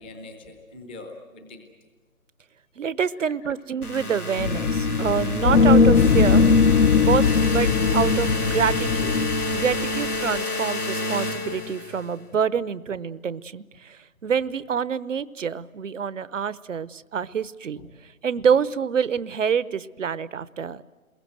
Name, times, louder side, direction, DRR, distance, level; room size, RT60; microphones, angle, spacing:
voice 1, 0.0-1.6 3.2-3.5 8.0-8.1 9.1-9.3 9.8-9.9 14.3-14.4 17.7-17.9 18.4-18.5, left 2 dB, 10° left, 5 dB, 0.7 m, -44 dB
voice 2, 2.8-6.4 6.9-9.2 9.5-17.8 18.2-20.8, right 7 dB, 60° right, 18 dB, 0.9 m, -26 dB
sound 1, 3.8-12.1, left 1 dB, 90° left, 2.6 m, -29 dB
sound 2, 4.4-10.4, left 5 dB, 60° left, 0.9 m, -19 dB
28.0 x 22.0 x 7.8 m, 1.4 s
figure-of-eight pair, 150°, 43 cm